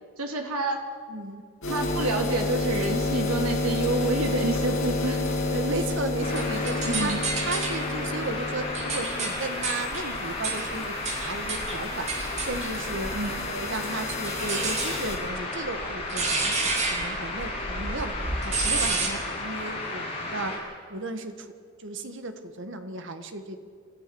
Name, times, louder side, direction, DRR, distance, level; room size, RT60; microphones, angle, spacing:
voice 1, 0.2-0.8 1.7-5.2 6.8-7.2 13.1-13.4, right 2 dB, 80° right, 3 dB, 2.9 m, -28 dB
voice 2, 1.1-1.4 5.4-7.1 7.4-12.1 12.4-13.1 13.5-16.5 16.9-20.5 20.9-21.5 21.8-23.6, right 2 dB, 55° right, 7 dB, 1.7 m, -34 dB
Desktop PC I, 1.6-15.2, left 2 dB, 65° left, 7.9 m, -31 dB
sound 1, 6.2-20.6, left 2 dB, 25° left, 6.7 m, -34 dB
sound 2, 6.3-7.8 8.4-13.5 14.3-19.1, right 3 dB, 30° right, 3.0 m, -31 dB
27.5 x 14.0 x 7.1 m, 2.1 s
head